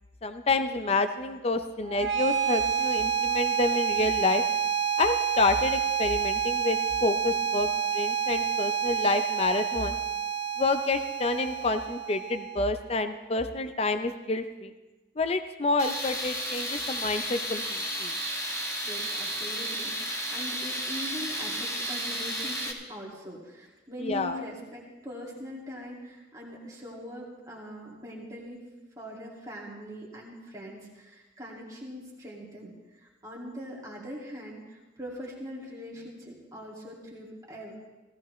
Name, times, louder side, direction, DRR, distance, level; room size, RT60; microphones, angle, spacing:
voice 1, 0.2-4.4 5.0-7.7 7.9-10.0 10.6-14.7 15.2-18.2 24.0-24.4, left 3 dB, 35° left, 9 dB, 0.6 m, -28 dB
sound 1, 1.8-12.9, right 8 dB, 75° right, 1.1 m, -28 dB
Tools, 15.8-22.7, equal, 15° left, 1.3 m, -33 dB
voice 2, 18.8-19.9 20.3-28.6 29.0-37.8, equal, 20° right, -5 dB, 2.3 m, -42 dB
16.0 x 16.0 x 3.2 m, 1.1 s
head